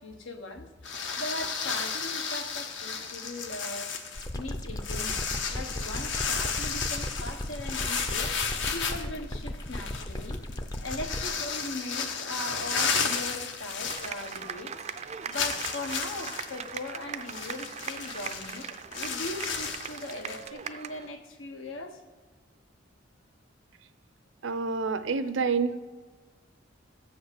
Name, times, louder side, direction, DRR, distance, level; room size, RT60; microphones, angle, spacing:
voice 1, 0.0-3.9 4.4-8.4 8.7-10.4 10.8-14.7 15.3-22.0, left 2 dB, 90° left, 4 dB, 1.3 m, -39 dB
sound 1, 0.8-14.6 14.9-15.0 15.3-20.5, left 5 dB, 70° left, 0.9 m, -33 dB
sound 2, 4.1-11.3, left 1 dB, 20° left, 0.5 m, -36 dB
sound 3, 13.8-21.1, right 7 dB, 35° right, 0.4 m, -39 dB
voice 2, 24.4-25.9, right 4 dB, 75° right, 11 dB, 0.7 m, -28 dB
14.0 x 5.1 x 8.0 m, 1.5 s
head